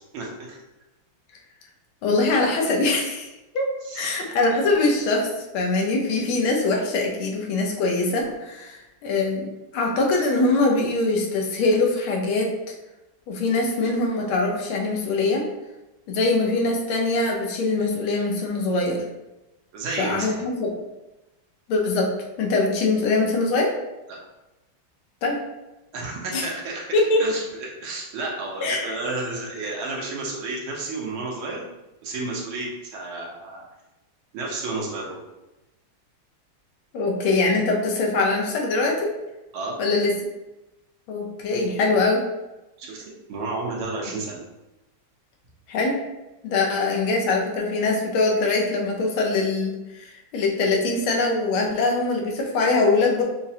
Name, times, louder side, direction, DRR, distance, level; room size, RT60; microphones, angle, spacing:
voice 1, 0.1-0.6 3.8-4.1 19.7-20.3 24.1-24.2 25.9-31.6 32.0-33.6 34.3-35.2 39.5-39.7 42.8-43.0 43.3-44.4, right 3 dB, 85° right, -2 dB, 1.8 m, -31 dB
voice 2, 2.0-3.3 3.5-5.3 5.5-9.5 9.7-12.5 13.3-15.5 16.1-19.0 20.0-20.7 21.7-22.1 22.4-23.7 25.2-25.4 26.3-26.4 26.9-27.2 28.6-28.8 36.9-39.1 39.8-40.1 41.1-42.2 45.7-46.0 46.4-49.7 50.0-53.2, left 3 dB, 90° left, 0 dB, 1.6 m, -22 dB
6.1 x 2.1 x 2.7 m, 1.0 s
omnidirectional pair, 2.2 m